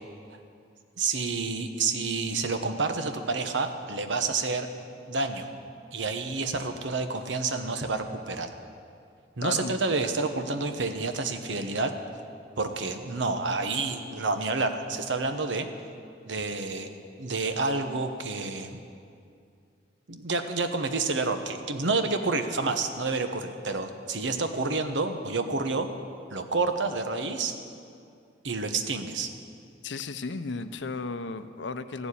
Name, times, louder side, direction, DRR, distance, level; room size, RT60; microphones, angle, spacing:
voice 1, 1.0-4.7 5.1-5.5 5.9-8.5 9.4-11.9 12.6-15.7 16.2-16.9 17.2-18.8 20.1-25.9 26.3-27.5 28.4-29.3, right 3 dB, 85° right, 7 dB, 1.1 m, -29 dB
voice 2, 9.4-9.7 29.8-32.1, left 4 dB, 75° left, 11 dB, 0.7 m, -34 dB
15.0 x 7.2 x 9.9 m, 2.4 s
head